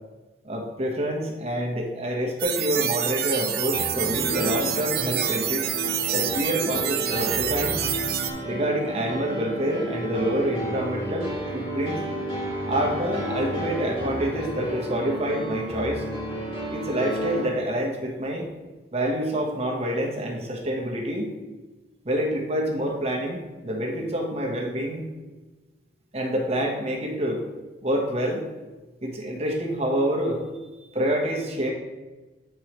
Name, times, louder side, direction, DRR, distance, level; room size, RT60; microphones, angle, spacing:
voice 1, 0.4-5.6 6.1-7.8 8.4-12.0 12.7-16.0 16.7-18.5 18.9-21.3 22.0-25.0 26.1-27.4 27.8-28.4 29.0-30.4 30.9-31.7, equal, 35° right, 0 dB, 1.1 m, -27 dB
sound 1, 2.4-8.3, right 10 dB, 60° right, 0.5 m, -27 dB
sound 2, 3.7-17.4, equal, 30° left, 2.2 m, -32 dB
8.3 x 4.5 x 3.0 m, 1.2 s
head